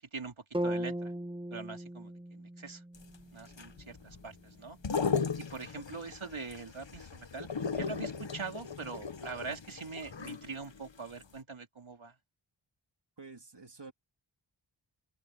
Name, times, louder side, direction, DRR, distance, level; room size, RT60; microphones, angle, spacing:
voice 1, 0.1-1.1 1.5-2.8 3.3-4.8 5.4-7.5 7.8-12.2, right 4 dB, 85° right, 2.9 m, -43 dB
sound 1, 0.5-4.6, right 1 dB, 10° right, 1.1 m, -38 dB
sound 2, 2.9-10.9 11.2-11.3, left 5 dB, 65° left, 1.4 m, -37 dB
voice 2, 3.9-4.4 13.2-13.9, right 3 dB, 60° right, 3.6 m, -51 dB
wide cardioid pair, 45°, 47 cm